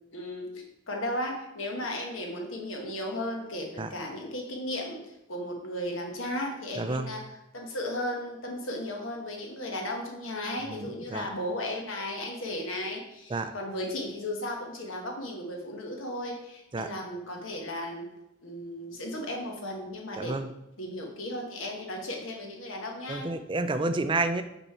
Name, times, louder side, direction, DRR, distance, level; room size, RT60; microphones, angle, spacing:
voice 1, 0.1-18.1 18.4-20.3 20.8-23.3, left 1 dB, 70° left, 1 dB, 1.3 m, -35 dB
voice 2, 6.8-7.1 10.7-11.3 13.3-13.5 16.7-16.9 20.2-20.5 23.1-24.4, right 3 dB, 25° right, 10 dB, 0.3 m, -30 dB
5.4 x 5.4 x 4.3 m, 0.87 s
head